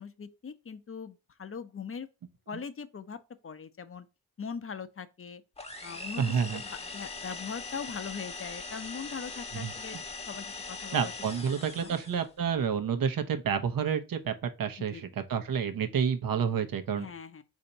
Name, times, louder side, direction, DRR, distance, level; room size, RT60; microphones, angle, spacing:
voice 1, 0.0-2.1 2.5-3.2 3.4-4.1 4.4-5.4 5.8-10.0 10.3-11.1 11.5-12.0 14.9-15.0 17.0-17.4, left 6 dB, 35° left, 0.6 m, -41 dB
sound 1, 5.6-12.3, left 3 dB, 15° left, 0.9 m, -41 dB
voice 2, 6.2-6.6 9.5-10.0 10.9-17.1, right 7 dB, 65° right, 0.8 m, -30 dB
4.3 x 2.7 x 3.9 m
cardioid pair, 55°, 36 cm